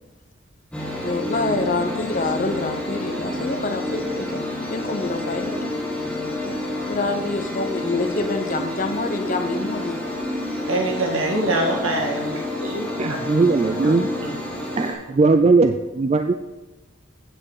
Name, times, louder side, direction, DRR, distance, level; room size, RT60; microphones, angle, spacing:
sound 1, 0.7-14.9, left 1 dB, 5° left, 1.7 m, -29 dB
voice 1, 1.0-4.4 4.7-5.7 6.4-6.6 6.9-10.0, left 3 dB, 40° left, 7 dB, 0.7 m, -26 dB
voice 2, 10.7-13.1 13.8-13.9 14.2-14.4, right 1 dB, 75° right, -1 dB, 2.1 m, -24 dB
voice 3, 13.0-14.1 14.8-16.3, right 3 dB, 30° right, 7 dB, 0.3 m, -19 dB
8.7 x 7.4 x 4.8 m, 1.1 s
head